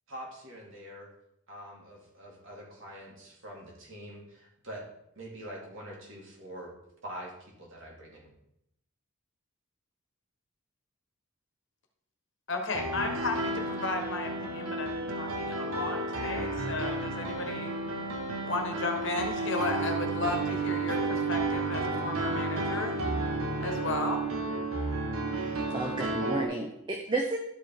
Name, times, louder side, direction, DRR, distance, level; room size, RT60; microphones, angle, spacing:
voice 1, 0.1-1.1 1.5-4.8 5.2-6.7 7.0-8.3, equal, 60° right, -2 dB, 2.4 m, -44 dB
voice 2, 12.5-17.7 18.4-23.0 23.6-24.2, left 3 dB, 55° left, 4 dB, 1.4 m, -34 dB
Piano, 12.7-26.5, right 2 dB, 75° right, 1.2 m, -32 dB
voice 3, 25.3-27.4, right 2 dB, 20° right, 3 dB, 0.6 m, -33 dB
12.0 x 4.9 x 4.6 m, 0.79 s
head